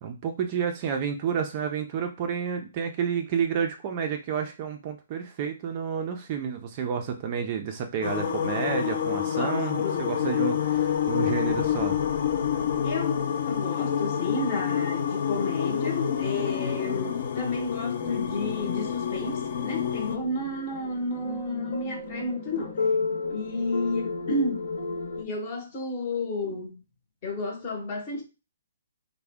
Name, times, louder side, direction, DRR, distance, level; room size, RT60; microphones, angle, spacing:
voice 1, 0.0-12.0, right 7 dB, 25° right, 0.3 m, -30 dB
sound 1, 8.0-20.2, left 8 dB, 45° left, 0.4 m, -28 dB
voice 2, 9.3-10.2 12.5-22.8 23.3-24.7 25.1-26.8 27.2-28.2, left 2 dB, 25° left, 0.8 m, -32 dB
sound 2, 18.0-25.2, left 4 dB, 70° left, 1.0 m, -33 dB
3.4 x 2.0 x 3.4 m
hypercardioid pair, 170°, 0 cm